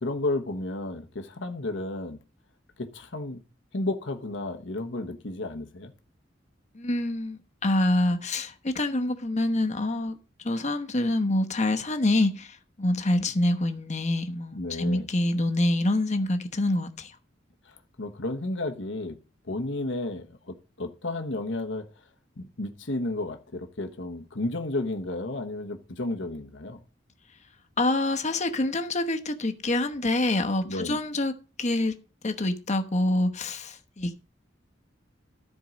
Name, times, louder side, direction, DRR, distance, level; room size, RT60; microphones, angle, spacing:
voice 1, 0.0-2.2 2.8-3.4 3.7-5.9 14.5-15.1 17.7-19.2 19.5-21.9 22.4-26.8 30.6-31.0, left 2 dB, 70° left, 1.2 m, -32 dB
voice 2, 6.8-10.1 10.4-12.5 12.8-17.1 27.8-31.3 31.6-31.9 32.2-34.1, left 1 dB, 40° left, 1.1 m, -26 dB
13.5 x 4.6 x 6.4 m
head